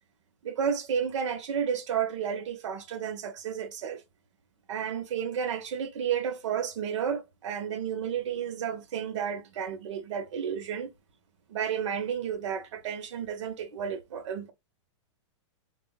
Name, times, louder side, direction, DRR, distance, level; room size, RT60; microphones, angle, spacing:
voice 1, 0.4-4.0 4.7-10.9 11.5-14.5, right 8 dB, 75° right, 0.9 m, -32 dB
3.7 x 2.3 x 2.2 m
supercardioid pair, 150°, 16 cm